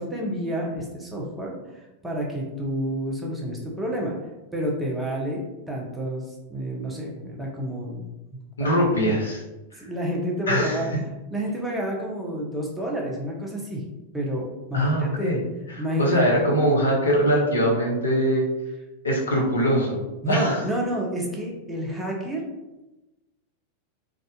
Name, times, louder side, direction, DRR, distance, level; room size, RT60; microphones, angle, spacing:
voice 1, 0.0-4.1 4.5-6.2 6.5-8.7 9.7-10.9 11.3-13.8 14.1-15.3 15.8-16.2 20.2-22.4, equal, 10° right, -2 dB, 0.9 m, -29 dB
voice 2, 8.6-9.4 10.5-10.8 14.7-15.4 15.7-18.5 19.0-20.0 20.3-20.6, equal, 75° left, -1 dB, 1.0 m, -22 dB
3.9 x 3.7 x 2.4 m, 1.0 s
figure-of-eight pair, 90°, 0 cm